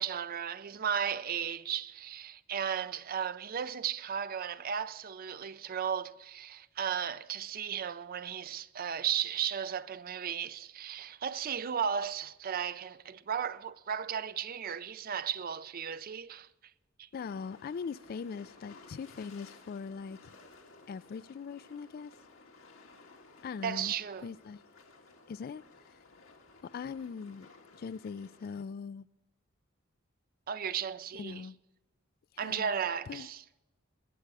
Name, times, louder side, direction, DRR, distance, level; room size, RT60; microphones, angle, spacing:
voice 1, 0.0-16.5 17.0-17.1 23.6-24.3 30.5-31.5 32.4-33.4, right 8 dB, 45° right, 0.4 m, -35 dB
sound 1, 17.1-28.6, left 3 dB, 90° left, 1.9 m, -57 dB
voice 2, 17.1-20.3 20.9-22.1 23.4-23.9 24.2-24.6 25.3-25.6 26.6-27.5 27.8-29.1 31.1-31.6 32.3-32.7 33.1-33.3, left 5 dB, 45° left, 0.3 m, -41 dB
20.0 x 7.8 x 4.7 m
head